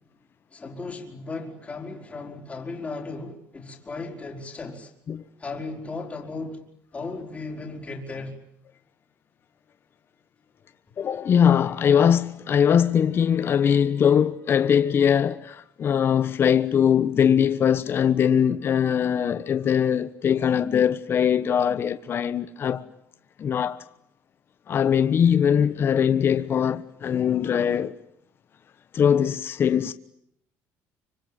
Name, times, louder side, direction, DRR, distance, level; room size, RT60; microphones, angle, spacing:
voice 1, 0.5-4.9 5.4-6.6 6.9-8.4, left 3 dB, 20° left, 5.0 m, -36 dB
voice 2, 11.0-22.8 23.4-23.8 24.7-27.9 28.9-29.9, left 8 dB, 40° left, 1.1 m, -21 dB
25.5 x 25.0 x 9.1 m
cardioid pair, 115°, 6 cm